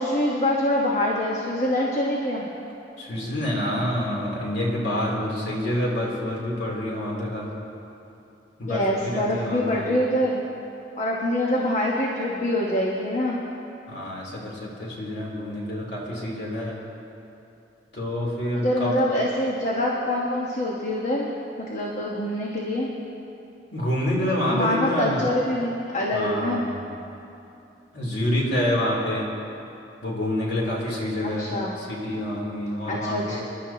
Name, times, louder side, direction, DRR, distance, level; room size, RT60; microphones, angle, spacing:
voice 1, 0.0-2.4 8.7-10.4 11.0-13.4 18.5-21.3 21.6-22.9 24.5-26.6 31.2-31.7 32.9-33.4, left 1 dB, 40° left, -3 dB, 1.3 m, -25 dB
voice 2, 3.0-7.5 8.6-9.9 13.9-16.8 17.9-18.9 23.7-25.2 26.1-26.8 27.9-29.3 30.0-33.4, left 1 dB, 75° left, -4 dB, 3.3 m, -27 dB
27.5 x 11.5 x 2.9 m, 2.8 s
head